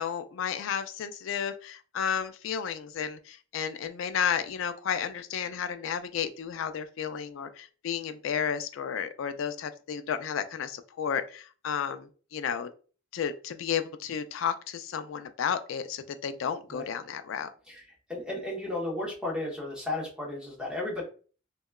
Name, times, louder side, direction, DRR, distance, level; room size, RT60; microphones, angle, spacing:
voice 1, 0.0-12.7 13.1-17.5, left 7 dB, 75° left, 10 dB, 0.3 m, -32 dB
voice 2, 18.1-21.0, left 2 dB, 5° right, -4 dB, 0.8 m, -34 dB
2.8 x 2.2 x 2.2 m, 0.39 s
head